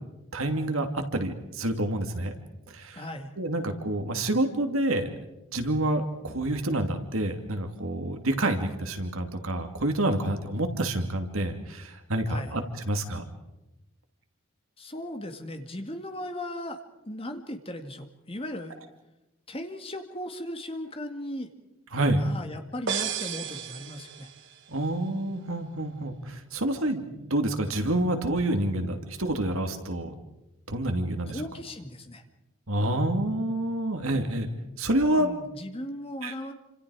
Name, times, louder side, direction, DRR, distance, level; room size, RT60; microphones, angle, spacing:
voice 1, 0.3-2.3 2.7-3.0 3.4-5.1 5.5-12.6 12.9-13.2 21.9-22.2 24.7-30.2 30.7-31.4 32.7-34.5 34.8-35.3 36.2-36.3, right 1 dB, 80° right, 5 dB, 2.6 m, -28 dB
voice 2, 3.0-3.3 12.3-12.5 14.8-18.8 19.5-21.5 22.2-24.3 31.3-32.2 35.2-36.5, left 1 dB, 25° left, 6 dB, 2.2 m, -37 dB
sound 1, 22.9-24.7, right 7 dB, 60° right, 1.7 m, -33 dB
28.5 x 26.5 x 4.9 m, 0.96 s
head